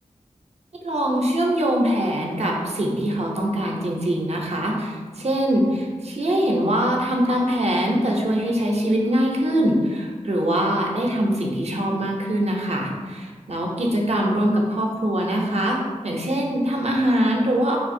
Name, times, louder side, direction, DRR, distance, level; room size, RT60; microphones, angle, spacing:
voice 1, 0.8-15.8 16.0-17.8, equal, 60° right, -1 dB, 0.6 m, -23 dB
3.7 x 2.7 x 2.6 m, 1.5 s
wide cardioid pair, 65°, 12 cm